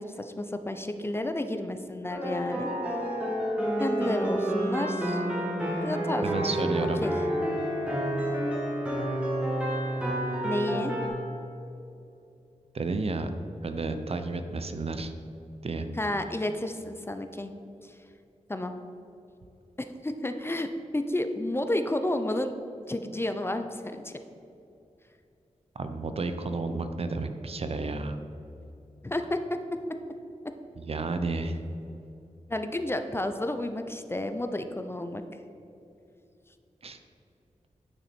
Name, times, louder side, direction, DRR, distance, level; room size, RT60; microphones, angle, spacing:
voice 1, 0.0-2.7 3.8-5.2 5.8-7.1 10.4-10.9 16.0-17.5 17.8-17.9 18.5-18.7 19.8-22.5 22.9-24.1 29.0-29.6 32.5-35.2, left 1 dB, 20° left, 8 dB, 0.5 m, -31 dB
sound 1, 2.1-11.1, right 1 dB, 10° right, 1.7 m, -29 dB
voice 2, 6.2-7.0 12.7-13.3 13.6-15.1 15.6-15.9 25.8-28.2 30.8-31.6 36.8-37.0, right 3 dB, 50° right, 8 dB, 0.6 m, -31 dB
9.6 x 6.0 x 4.3 m, 2.7 s
wide cardioid pair, 125°, 13 cm